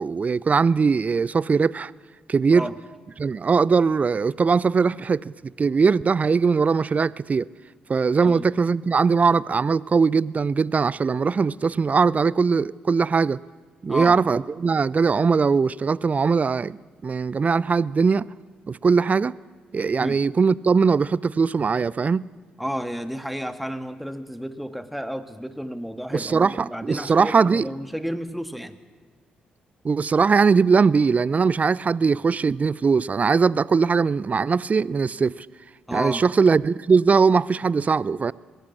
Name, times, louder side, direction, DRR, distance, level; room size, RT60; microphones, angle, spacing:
voice 1, 0.0-1.9 2.3-2.7 3.2-7.5 7.9-13.4 13.8-16.8 17.0-18.3 18.7-19.4 19.7-22.3 26.1-27.7 29.8-35.5 35.9-38.3, right 5 dB, 35° right, 0.5 m, -20 dB
voice 2, 22.6-28.8 35.9-36.2, equal, ahead, 1.7 m, -31 dB
20.5 x 16.0 x 8.5 m
figure-of-eight pair, 40°, 4 cm